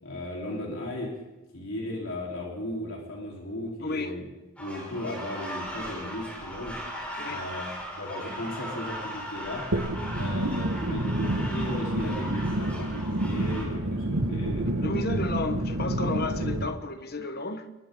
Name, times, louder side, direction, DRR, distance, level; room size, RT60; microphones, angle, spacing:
voice 1, 0.0-1.1 1.5-4.2 4.6-6.8 7.2-9.7 10.1-15.2 15.8-16.0, left 1 dB, 65° left, 4.2 m, -36 dB
voice 2, 3.8-4.2 7.2-7.4 14.8-17.7, left 2 dB, 45° left, 1.3 m, -32 dB
sound 1, 4.6-13.6, equal, 5° left, 5.9 m, -38 dB
sound 2, 9.7-16.7, right 1 dB, 80° right, 1.9 m, -29 dB
28.0 x 23.0 x 4.0 m
head